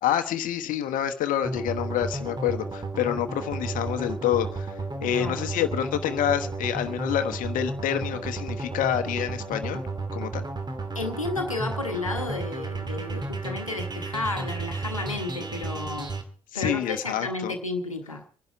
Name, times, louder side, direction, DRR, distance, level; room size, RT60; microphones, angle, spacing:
voice 1, 0.0-9.8 10.1-10.4 16.5-17.5, left 10 dB, 55° left, 8 dB, 1.2 m, -27 dB
sound 1, 1.4-16.2, right 3 dB, 25° right, 2.7 m, -33 dB
voice 2, 5.0-5.4 10.9-16.1 16.5-18.2, left 2 dB, 90° left, 5 dB, 1.2 m, -32 dB
24.0 x 11.0 x 4.6 m, 0.40 s
figure-of-eight pair, 45°, 17 cm